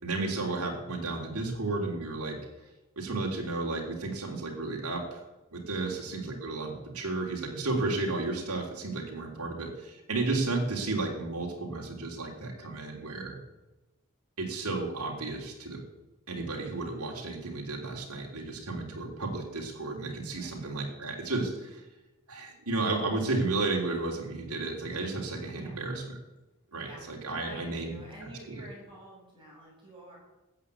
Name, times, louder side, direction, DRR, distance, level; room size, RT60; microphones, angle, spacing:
voice 1, 0.0-2.4 2.9-5.2 5.5-13.4 14.4-15.8 16.3-21.8 22.3-26.0 26.7-28.6, right 3 dB, 80° right, 0 dB, 3.3 m, -33 dB
voice 2, 5.8-6.1 20.3-20.8 25.6-25.8 26.8-30.2, right 1 dB, 25° right, -4 dB, 7.1 m, -49 dB
14.0 x 8.8 x 8.3 m, 1.0 s
head